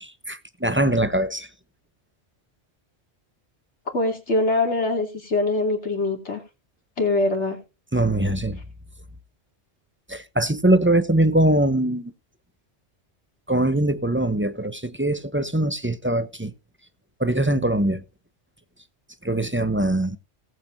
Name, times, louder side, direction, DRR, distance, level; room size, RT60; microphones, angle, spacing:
voice 1, 0.0-1.5 7.9-8.6 10.1-12.1 13.5-16.5 17.2-18.0 19.2-20.2, right 1 dB, 15° right, 0.6 m, -22 dB
voice 2, 3.9-6.4 7.0-7.6, left 2 dB, 75° left, 3.2 m, -23 dB
18.5 x 8.4 x 2.7 m
omnidirectional pair, 1.2 m